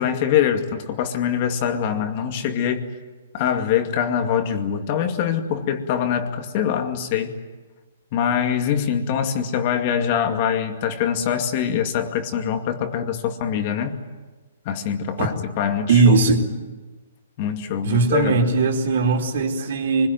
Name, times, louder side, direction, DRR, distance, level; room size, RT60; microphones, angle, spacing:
voice 1, 0.0-2.8 3.3-7.3 8.1-14.0 14.7-16.2 17.4-18.5, left 8 dB, 40° left, 6 dB, 2.3 m, -24 dB
voice 2, 15.9-16.4 17.8-20.1, right 4 dB, 65° right, 3 dB, 4.2 m, -18 dB
24.5 x 21.0 x 9.4 m, 1.3 s
hypercardioid pair, 155°, 0 cm